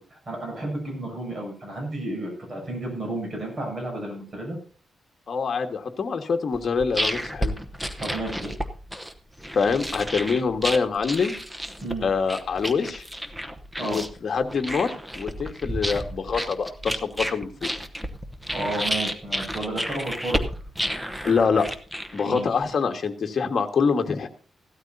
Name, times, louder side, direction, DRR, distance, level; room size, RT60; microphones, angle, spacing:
voice 1, 0.1-4.6 8.0-8.5 11.8-12.1 13.8-14.0 18.5-20.4 22.2-22.5, right 2 dB, 40° right, 0 dB, 7.5 m, -32 dB
voice 2, 5.3-7.5 9.5-11.3 12.0-13.0 13.8-17.7 21.2-21.7 22.1-24.3, left 5 dB, 50° left, 5 dB, 1.5 m, -25 dB
sound 1, 6.5-22.6, equal, 5° right, 0.9 m, -31 dB
16.5 x 13.0 x 2.7 m, 0.40 s
wide cardioid pair, 135°, 0 cm